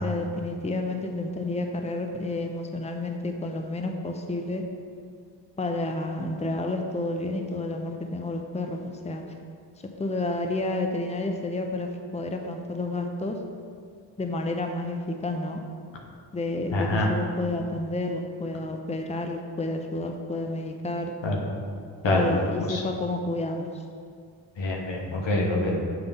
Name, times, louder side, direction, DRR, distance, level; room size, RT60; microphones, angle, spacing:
voice 1, 0.0-4.6 5.6-9.2 10.0-11.9 12.1-13.4 14.2-15.6 16.3-21.1 22.0-23.7, left 2 dB, 15° left, 3 dB, 0.7 m, -30 dB
voice 2, 16.7-17.1 21.2-21.4 22.0-22.2 22.7-22.8 24.6-25.8, left 2 dB, 70° left, 0 dB, 1.2 m, -25 dB
7.9 x 3.5 x 5.5 m, 2.2 s
supercardioid pair, 45°, 46 cm